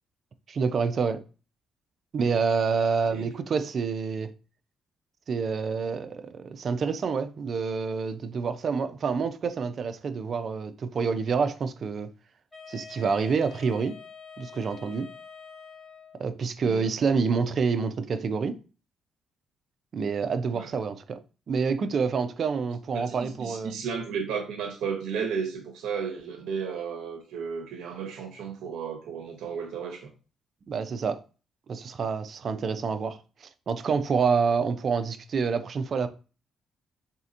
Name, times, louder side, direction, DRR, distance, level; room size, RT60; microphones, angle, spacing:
voice 1, 0.5-1.2 2.1-4.3 5.3-12.1 12.7-14.0 14.4-15.1 16.2-18.6 19.9-21.2 21.5-23.7 30.7-31.2 31.7-36.1, right 5 dB, 50° right, 0.4 m, -27 dB
Wind instrument woodwind instrument, 12.5-16.4, left 5 dB, 15° left, 1.3 m, -46 dB
voice 2, 22.9-30.1, right 6 dB, 80° right, 0.8 m, -33 dB
4.2 x 2.7 x 2.5 m
cardioid pair, 90°, 0 cm